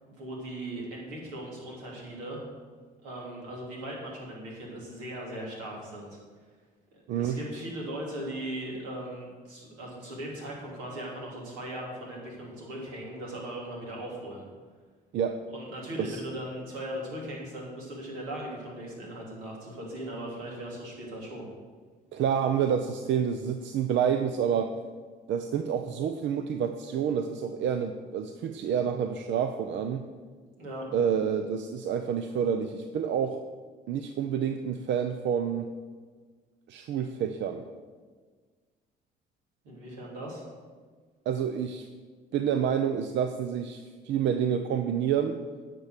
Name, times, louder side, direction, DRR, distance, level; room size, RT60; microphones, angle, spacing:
voice 1, 0.2-2.4 3.0-6.2 6.9-14.4 15.5-21.5 30.6-30.8 39.6-40.4, right 1 dB, 90° right, -3 dB, 3.1 m, -38 dB
voice 2, 15.1-15.4 16.0-16.2 22.1-24.7 25.3-30.1 30.9-33.4 33.9-35.7 36.7-37.6 41.3-41.9 42.3-45.4, right 8 dB, 65° right, 8 dB, 0.6 m, -28 dB
10.0 x 6.0 x 6.6 m, 1.5 s
supercardioid pair, 65°, 20 cm